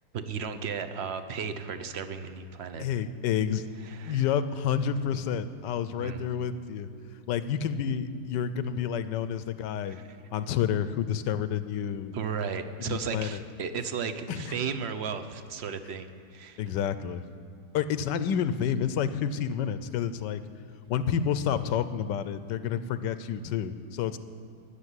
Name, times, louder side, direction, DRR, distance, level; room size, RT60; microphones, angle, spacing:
voice 1, 0.1-2.8 3.8-4.2 6.0-6.3 9.9-10.0 12.1-16.6, right 6 dB, 50° right, 9 dB, 0.9 m, -35 dB
voice 2, 2.8-3.6 4.1-6.9 7.3-10.0 10.3-12.1 12.8-13.4 14.3-14.5 16.6-17.2 17.7-20.4 20.9-24.2, left 8 dB, 90° left, 12 dB, 1.3 m, -29 dB
16.5 x 7.2 x 9.7 m, 2.6 s
omnidirectional pair, 1.8 m